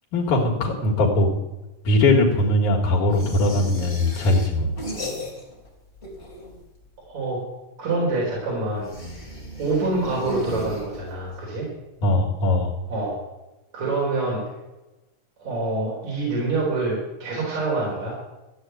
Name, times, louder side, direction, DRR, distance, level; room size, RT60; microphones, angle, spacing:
voice 1, 0.1-1.3 1.8-4.7 12.0-12.7, left 2 dB, 75° left, -1 dB, 3.3 m, -20 dB
sound 1, 3.1-5.7 5.9-6.8 8.8-11.3, left 1 dB, 20° left, 3.4 m, -35 dB
voice 2, 7.1-7.4 7.8-9.3 9.6-11.7 12.9-13.2 13.7-14.4 15.4-18.1, right 2 dB, 65° right, -4 dB, 5.2 m, -26 dB
14.5 x 8.1 x 9.0 m, 1.0 s
omnidirectional pair, 3.5 m